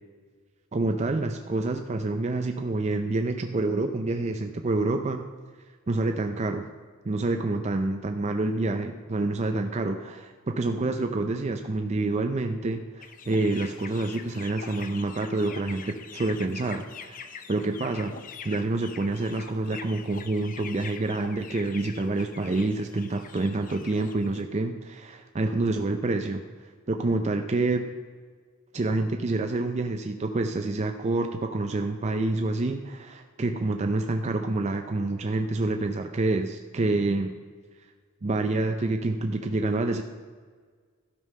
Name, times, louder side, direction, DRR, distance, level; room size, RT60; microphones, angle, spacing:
voice 1, 0.7-5.2 5.9-6.6 7.0-18.1 18.4-26.4 26.9-27.8 28.7-37.3 38.2-40.0, right 2 dB, 30° right, 5 dB, 0.5 m, -27 dB
sound 1, 13.0-24.4, left 6 dB, 40° left, 0.6 m, -44 dB
12.5 x 5.4 x 5.5 m, 1.5 s
head